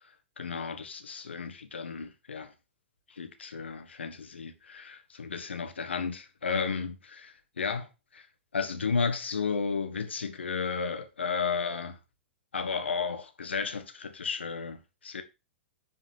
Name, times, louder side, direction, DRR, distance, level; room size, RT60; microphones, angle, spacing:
voice 1, 0.4-2.5 3.1-7.9 8.1-8.3 8.5-12.0 12.5-15.2, left 5 dB, 75° left, 1.9 m, -33 dB
10.0 x 5.0 x 4.8 m
figure-of-eight pair, 105°, 6 cm